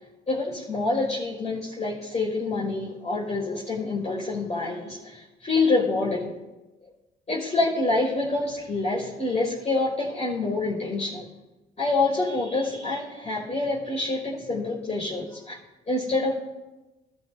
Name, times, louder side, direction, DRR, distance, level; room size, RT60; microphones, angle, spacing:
voice 1, 0.3-6.3 6.8-6.9 7.3-11.3 11.8-15.6 15.9-16.3, left 3 dB, 35° left, -6 dB, 5.3 m, -27 dB
26.5 x 13.0 x 2.8 m, 1.1 s
cardioid pair, 90°, 20 cm